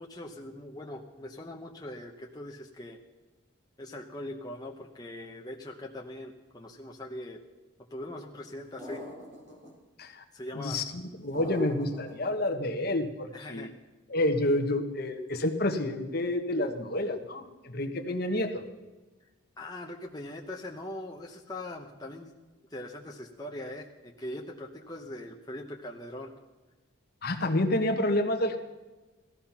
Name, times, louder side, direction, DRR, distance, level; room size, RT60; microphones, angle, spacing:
voice 1, 0.0-3.0 3.8-7.4 7.9-9.0 10.3-10.8 13.3-13.7 19.6-22.4 22.7-26.3, left 1 dB, 20° left, 0 dB, 1.0 m, -41 dB
sound 1, 8.8-9.7 11.3-12.3, left 1 dB, 35° right, 3.7 m, -42 dB
voice 2, 10.5-13.7 14.1-18.6 27.2-28.6, left 1 dB, 45° left, 4 dB, 1.4 m, -29 dB
17.5 x 14.0 x 5.8 m, 1.2 s
head